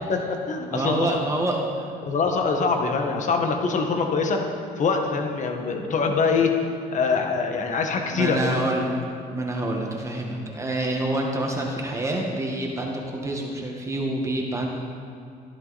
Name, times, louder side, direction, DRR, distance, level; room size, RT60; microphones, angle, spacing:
voice 1, 0.1-1.1 2.0-4.4 4.8-6.6 6.9-8.6, left 4 dB, 45° left, 3 dB, 1.7 m, -24 dB
voice 2, 0.7-1.9 8.1-8.9 9.3-14.7, right 1 dB, 15° right, -1 dB, 1.9 m, -27 dB
14.5 x 11.5 x 4.3 m, 2.5 s
cardioid pair, 110°, 17 cm